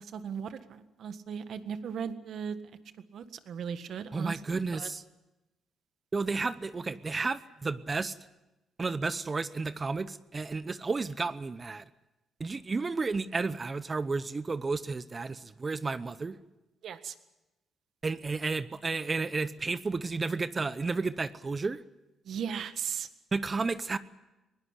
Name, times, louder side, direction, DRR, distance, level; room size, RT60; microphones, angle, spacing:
voice 1, 0.0-2.6 3.1-4.9 16.8-17.1 22.2-23.1, right 7 dB, 65° right, 11 dB, 1.6 m, -37 dB
voice 2, 4.1-5.0 6.1-8.2 8.8-11.8 12.4-16.4 18.0-21.8 23.3-24.0, right 4 dB, 30° right, 14 dB, 0.9 m, -32 dB
20.5 x 18.0 x 9.8 m, 1.0 s
cardioid pair, 90°, 0 cm